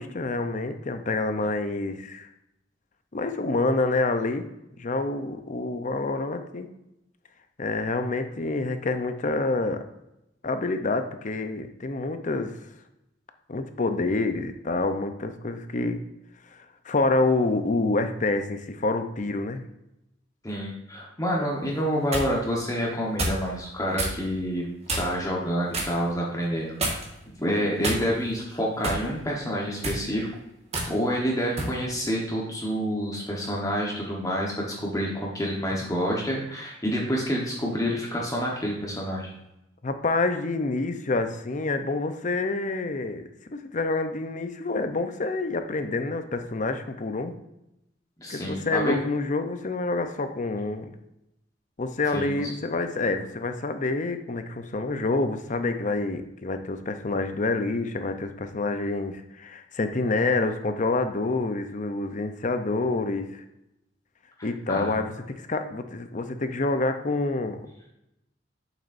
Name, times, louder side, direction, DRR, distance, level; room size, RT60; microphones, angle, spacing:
voice 1, 0.0-2.3 3.1-4.5 4.8-6.7 7.6-9.8 10.4-12.6 13.5-16.0 16.5-19.6 39.8-47.3 48.3-50.9 51.8-63.4 64.4-67.6, left 3 dB, 40° left, 8 dB, 0.7 m, -27 dB
voice 2, 20.4-24.7 25.0-30.3 30.9-39.3 48.2-48.9 52.1-52.5 64.4-65.0, equal, 20° left, -3 dB, 1.2 m, -28 dB
sound 1, 21.7-22.3 23.2-23.4 24.0-24.2 24.9-25.2 25.7-26.0 26.8-27.2 27.8-28.3 28.8-29.1 29.7-30.0 30.7-30.9 31.6-31.8, right 2 dB, 35° right, 1.6 m, -28 dB
8.3 x 7.4 x 2.6 m, 0.88 s
head